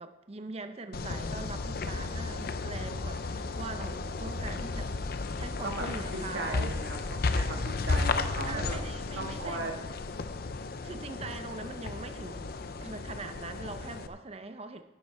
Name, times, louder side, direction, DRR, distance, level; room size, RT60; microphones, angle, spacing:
voice 1, 0.0-4.9 5.3-6.7 8.4-9.7 10.8-12.5 12.8-14.8, right 3 dB, 35° right, 8 dB, 0.6 m, -42 dB
sound 1, 0.9-14.1, left 3 dB, 55° left, 0.6 m, -34 dB
voice 2, 6.1-8.8 9.2-9.7, right 2 dB, 85° right, 2 dB, 1.6 m, -37 dB
12.0 x 8.3 x 4.3 m, 1.1 s
head